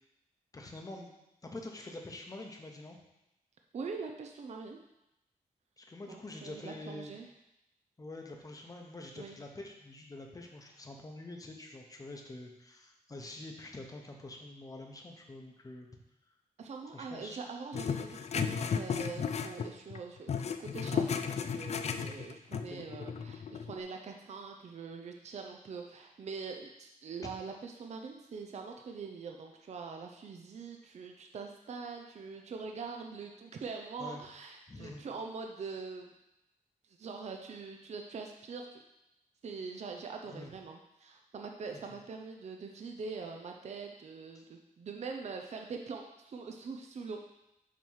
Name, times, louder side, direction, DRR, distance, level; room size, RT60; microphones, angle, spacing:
voice 1, 0.5-1.1 1.4-3.0 5.8-7.1 8.0-15.9 16.9-17.4 22.7-22.8 34.0-34.2 34.7-35.0 40.3-40.5 41.9-42.0 44.4-44.5, left 2 dB, 25° left, 2 dB, 0.9 m, -46 dB
voice 2, 3.7-4.8 6.1-7.3 9.2-9.4 16.6-20.3 20.6-36.1 36.9-38.8 39.4-47.2, right 4 dB, 50° right, 3 dB, 0.5 m, -43 dB
sound 1, 17.7-20.0 20.3-23.8, left 6 dB, 50° left, 0.4 m, -34 dB
7.5 x 3.0 x 5.5 m, 0.88 s
wide cardioid pair, 155°, 14 cm